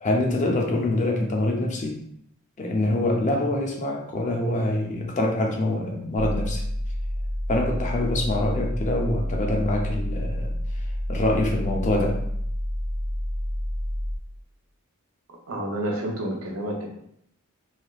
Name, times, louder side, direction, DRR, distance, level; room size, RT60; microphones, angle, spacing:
voice 1, 0.0-2.0 2.6-6.6 7.5-10.5 11.1-12.2, left 1 dB, 35° left, 0 dB, 0.5 m, -25 dB
sound 1, 6.2-14.2, equal, 30° right, 0.7 m, -29 dB
voice 2, 15.3-16.9, right 1 dB, 70° right, 0 dB, 0.7 m, -30 dB
3.3 x 2.8 x 2.3 m, 0.72 s
head